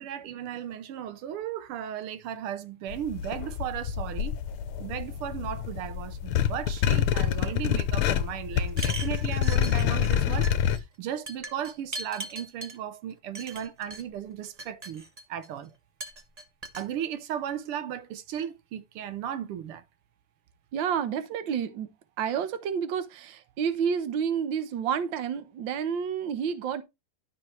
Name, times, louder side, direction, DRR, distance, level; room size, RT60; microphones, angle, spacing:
voice 1, 0.0-4.4 4.8-10.5 10.8-15.0 15.3-15.7 16.8-19.8, right 10 dB, 85° right, 1.8 m, -36 dB
sound 1, 2.9-10.8, left 9 dB, 75° left, 1.6 m, -27 dB
sound 2, 8.7-10.2 10.4-10.8 11.3-12.8 13.3-14.0 14.4-15.5 16.0-16.9, right 3 dB, 25° right, 1.0 m, -39 dB
voice 2, 20.7-21.9 22.2-26.8, right 7 dB, 65° right, 1.7 m, -29 dB
12.5 x 6.3 x 3.2 m
omnidirectional pair, 2.4 m